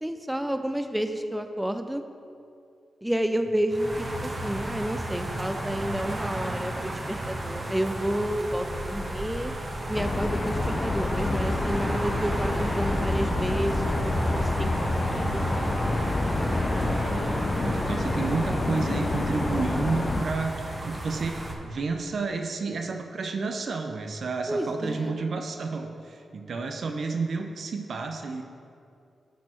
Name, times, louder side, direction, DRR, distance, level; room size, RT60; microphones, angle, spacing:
voice 1, 0.0-2.0 3.0-9.5 9.9-15.8 24.5-25.2, equal, 10° right, 7 dB, 0.5 m, -30 dB
sound 1, 3.7-21.5, right 1 dB, 35° right, 1.0 m, -33 dB
sound 2, 9.9-20.2, left 2 dB, 45° left, 0.5 m, -28 dB
sound 3, 15.3-21.2, equal, 15° left, 1.7 m, -44 dB
voice 2, 16.8-17.3 17.6-28.4, right 4 dB, 65° right, 4 dB, 0.6 m, -31 dB
8.2 x 4.3 x 4.4 m, 2.4 s
supercardioid pair, 45°, 0 cm